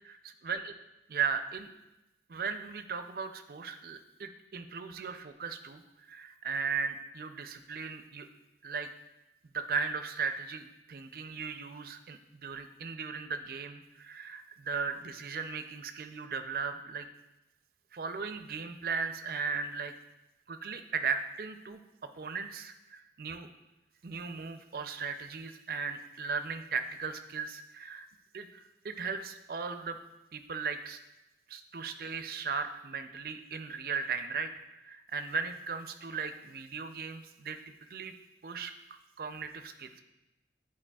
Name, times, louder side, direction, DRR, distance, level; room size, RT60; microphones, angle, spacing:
voice 1, 1.1-1.7 2.3-5.8 6.1-8.3 8.6-8.9 9.5-17.1 17.9-19.9 20.5-23.5 24.0-28.1 28.3-30.0 30.3-31.0 31.5-34.5 34.8-37.6 37.9-38.1 38.4-38.7 39.2-40.0, right 5 dB, 55° right, 9 dB, 0.4 m, -37 dB
9.8 x 4.6 x 2.3 m, 0.97 s
head